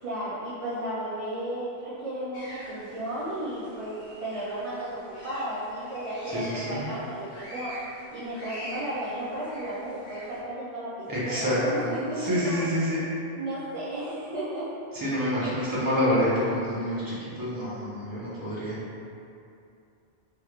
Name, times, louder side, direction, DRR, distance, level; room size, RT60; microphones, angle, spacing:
voice 1, 0.0-4.0 4.2-7.8 8.1-12.9 13.4-14.7, right 1 dB, 55° right, -10 dB, 0.4 m, -34 dB
sound 1, 2.3-10.4, equal, 65° left, 0.9 m, -44 dB
voice 2, 6.3-6.8 11.1-13.0 14.9-18.8, equal, 20° right, -10 dB, 0.7 m, -27 dB
3.2 x 2.9 x 2.4 m, 2.6 s
omnidirectional pair, 1.2 m